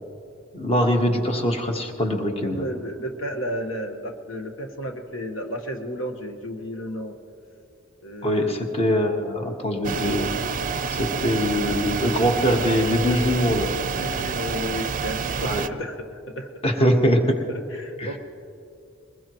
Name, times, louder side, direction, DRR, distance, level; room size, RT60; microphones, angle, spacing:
voice 1, 0.5-2.7 8.2-10.3 10.9-13.7 15.4-15.6 16.6-17.4 18.0-18.1, equal, 30° left, 3 dB, 1.3 m, -22 dB
voice 2, 2.4-7.2 8.0-8.6 11.5-11.9 13.9-16.5 17.5-18.2, equal, 85° left, 4 dB, 1.4 m, -33 dB
sound 1, 9.8-15.7, right 5 dB, 45° right, 0.5 m, -28 dB
22.0 x 20.5 x 3.1 m, 2.6 s
head